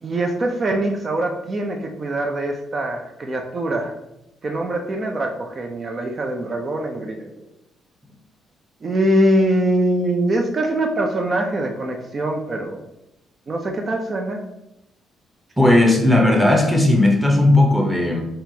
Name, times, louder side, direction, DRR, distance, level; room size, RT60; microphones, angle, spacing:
voice 1, 0.0-3.9 4.4-7.4 8.8-12.8 13.5-14.5, right 1 dB, 40° right, 2 dB, 0.5 m, -23 dB
voice 2, 15.6-18.3, left 1 dB, 5° right, 1 dB, 0.8 m, -16 dB
4.2 x 2.4 x 2.7 m, 0.85 s
cardioid pair, 90°, 0 cm